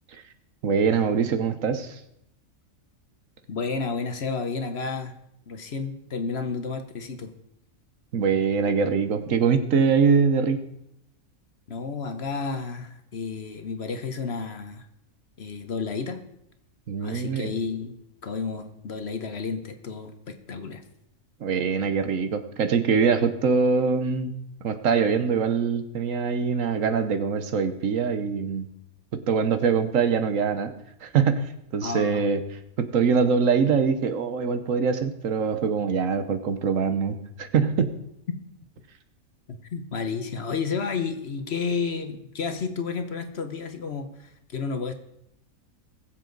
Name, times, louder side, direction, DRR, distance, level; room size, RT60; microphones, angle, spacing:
voice 1, 0.6-2.0 8.1-10.6 16.9-17.5 21.4-24.3 24.6-28.7 29.1-30.7 31.0-31.4 31.7-32.4 32.8-37.9, right 5 dB, 70° right, 9 dB, 1.3 m, -23 dB
voice 2, 3.5-5.1 5.5-7.3 11.7-14.9 15.4-16.2 17.0-17.9 18.2-20.8 31.8-32.2 39.5-44.9, left 5 dB, 50° left, 8 dB, 1.1 m, -31 dB
20.5 x 7.5 x 3.9 m, 0.78 s
omnidirectional pair, 1.5 m